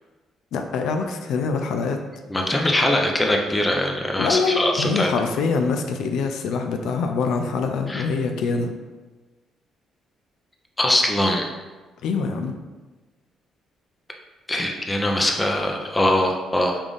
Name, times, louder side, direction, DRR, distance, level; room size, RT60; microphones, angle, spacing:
voice 1, 0.5-2.0 4.2-8.7 12.0-12.5, left 4 dB, 80° left, 5 dB, 0.4 m, -24 dB
voice 2, 2.3-5.1 7.9-8.0 10.8-11.5 14.5-16.8, left 1 dB, 15° left, 2 dB, 0.5 m, -22 dB
5.3 x 2.5 x 3.4 m, 1.3 s
cardioid pair, 130°, 0 cm